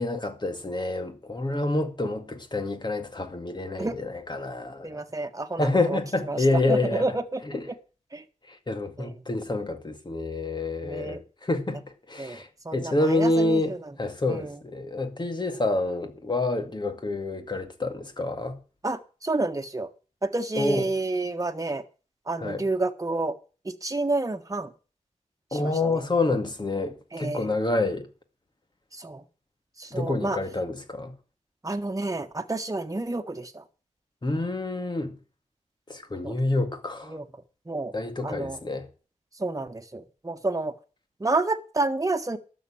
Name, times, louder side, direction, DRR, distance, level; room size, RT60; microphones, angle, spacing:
voice 1, 0.0-5.0 5.6-7.1 7.4-7.7 8.5-11.8 12.1-18.6 20.6-20.9 22.4-22.6 25.5-28.1 29.9-31.1 34.2-35.1 35.9-37.2 37.9-38.9, left 2 dB, 35° left, 2.2 m, -28 dB
voice 2, 4.8-6.0 6.3-6.4 6.7-7.4 8.1-8.2 9.0-9.1 10.8-11.2 12.2-13.8 14.3-14.6 18.8-19.9 20.2-21.8 22.3-23.3 23.6-24.7 25.5-26.0 27.1-27.5 28.9-29.2 29.8-30.4 31.6-33.6 36.2-36.4 37.0-37.2 37.7-37.9 38.2-38.6 39.4-40.7 41.2-42.4, right 2 dB, 25° right, 1.5 m, -29 dB
12.0 x 6.9 x 8.7 m
wide cardioid pair, 75°, 13 cm